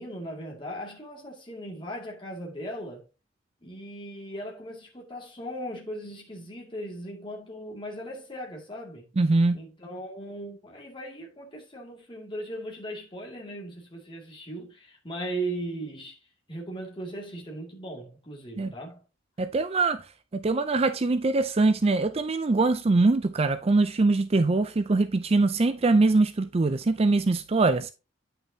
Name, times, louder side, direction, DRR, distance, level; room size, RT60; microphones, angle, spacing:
voice 1, 0.0-3.1 3.6-9.0 9.5-16.2 16.5-19.0, right 1 dB, 25° left, 2.2 m, -38 dB
voice 2, 9.2-9.6 18.6-18.7 19.4-20.1 20.3-27.9, right 3 dB, 30° right, 0.4 m, -23 dB
9.4 x 5.5 x 2.7 m
head